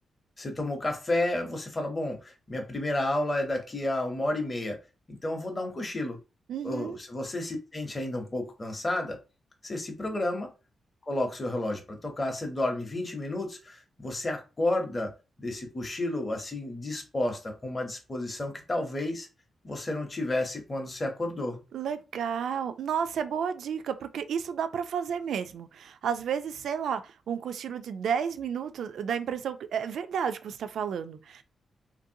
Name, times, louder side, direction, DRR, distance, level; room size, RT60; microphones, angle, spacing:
voice 1, 0.4-4.8 5.1-6.2 6.6-9.2 9.6-10.5 11.1-15.1 15.4-19.3 19.6-21.6, left 1 dB, 20° left, 0.6 m, -31 dB
voice 2, 6.5-7.0 21.7-31.4, right 7 dB, 75° right, 0.3 m, -32 dB
3.0 x 2.6 x 2.6 m
wide cardioid pair, 165°, 0 cm